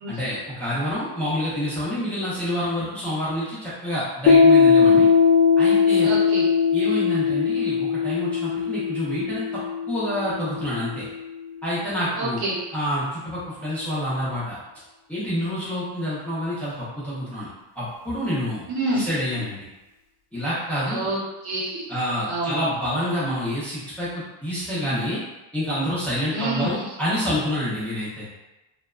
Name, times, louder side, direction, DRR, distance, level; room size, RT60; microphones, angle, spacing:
voice 1, 0.1-5.1 5.6-6.1 6.7-9.6 9.9-11.0 11.6-12.4 12.7-14.6 15.1-17.5 17.8-18.6 18.9-19.7 20.3-21.1 21.9-24.1 24.4-25.2 25.5-28.3, equal, 5° left, -10 dB, 0.3 m, -27 dB
Piano, 4.3-11.5, left 6 dB, 85° left, 0.6 m, -19 dB
voice 2, 6.0-6.5 12.2-12.6 18.7-19.1 20.9-21.9 22.3-22.7 26.3-26.7, right 1 dB, 55° right, -4 dB, 0.9 m, -27 dB
2.7 x 2.2 x 2.3 m, 1.0 s
cardioid pair, 175°, 45 cm